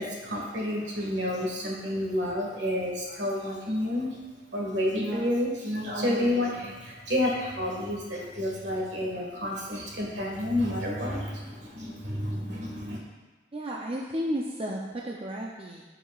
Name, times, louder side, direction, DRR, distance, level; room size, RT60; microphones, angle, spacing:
voice 1, 0.0-4.2 4.5-13.0, left 1 dB, 70° right, -2 dB, 1.7 m, -30 dB
voice 2, 13.5-15.8, equal, 30° right, -2 dB, 0.5 m, -33 dB
12.0 x 5.0 x 2.4 m, 1.3 s
head